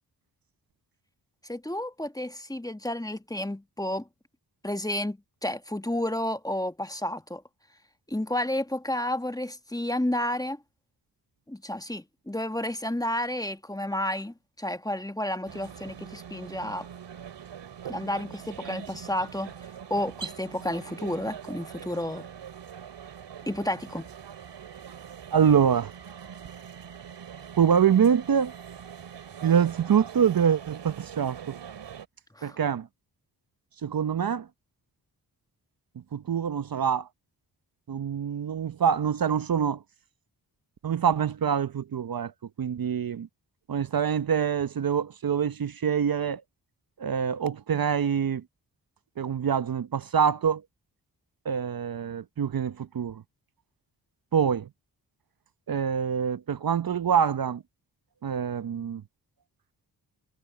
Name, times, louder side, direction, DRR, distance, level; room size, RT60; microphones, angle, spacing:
voice 1, 1.4-4.1 4.6-7.4 8.1-10.6 11.5-16.9 17.9-19.5 19.9-22.3 23.5-24.1 32.3-32.6, left 1 dB, 10° left, 1.4 m, -31 dB
sound 1, 15.5-32.1, right 8 dB, 80° right, 2.8 m, -43 dB
voice 2, 25.3-25.9 27.6-28.5 29.4-31.6 32.4-32.9 33.8-34.5 36.1-37.1 37.9-39.8 40.8-42.3 42.6-43.3 43.7-46.4 47.0-48.4 49.2-50.6 51.4-53.2 54.3-54.7 55.7-57.6 58.2-59.0, right 7 dB, 55° right, 0.9 m, -25 dB
cardioid pair, 45°, 42 cm